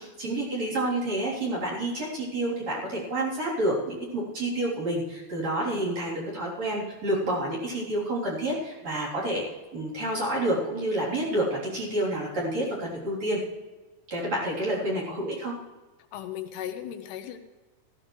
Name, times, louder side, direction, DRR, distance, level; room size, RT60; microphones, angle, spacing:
voice 1, 0.0-9.4 9.7-13.4 14.1-15.5, right 1 dB, 40° right, -6 dB, 4.4 m, -29 dB
voice 2, 16.1-17.4, left 10 dB, 80° left, 7 dB, 2.7 m, -36 dB
16.0 x 14.0 x 3.2 m, 1.2 s
omnidirectional pair, 4.7 m